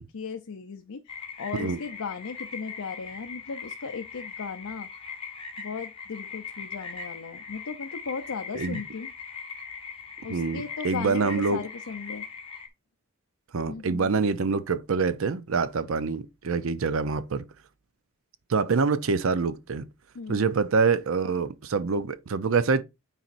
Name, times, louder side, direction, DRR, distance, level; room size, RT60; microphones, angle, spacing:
voice 1, 0.0-4.9 5.6-9.1 10.2-12.2 13.7-14.1 20.1-20.4, left 5 dB, 85° left, 0.6 m, -37 dB
sound 1, 1.1-12.7, left 5 dB, 25° left, 0.8 m, -40 dB
voice 2, 10.3-11.6 13.5-17.4 18.5-19.9 20.3-22.8, right 4 dB, 65° right, 0.5 m, -25 dB
9.0 x 4.2 x 2.5 m
head